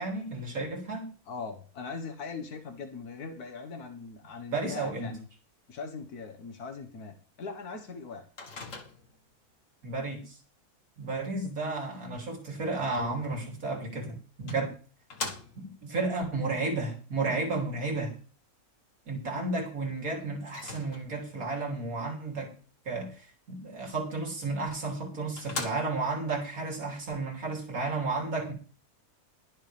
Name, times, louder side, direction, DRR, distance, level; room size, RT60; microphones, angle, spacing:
voice 1, 0.0-1.1 4.5-5.1 9.8-10.4 11.0-14.7 15.6-18.1 19.1-22.5 22.9-28.5, right 3 dB, 65° right, 1 dB, 3.6 m, -32 dB
voice 2, 1.3-5.3 5.7-8.2, left 4 dB, 80° left, 6 dB, 2.0 m, -40 dB
Microwave oven, 8.4-9.3 13.6-13.7 14.5-15.8 20.5-21.4 24.5-24.6 25.0-25.1 25.4-26.2, left 3 dB, 60° left, 2.1 m, -40 dB
21.5 x 7.3 x 3.5 m, 0.38 s
omnidirectional pair, 1.6 m